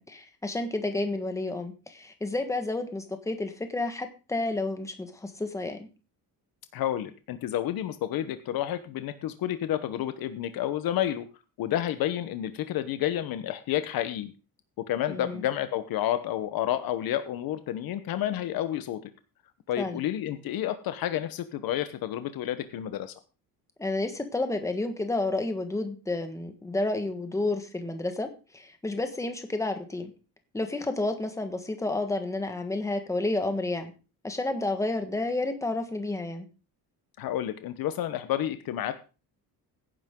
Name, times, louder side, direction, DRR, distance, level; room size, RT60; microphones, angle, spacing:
voice 1, 0.0-5.9 15.1-15.4 19.8-20.0 23.8-28.3 28.5-30.1 30.5-33.9 34.2-36.5, left 2 dB, 10° left, 7 dB, 1.4 m, -30 dB
voice 2, 6.7-11.2 11.6-14.3 14.8-19.0 19.7-23.1 37.2-38.9, left 12 dB, 70° left, 10 dB, 1.1 m, -30 dB
17.0 x 10.0 x 3.8 m, 0.33 s
cardioid pair, 170°, 37 cm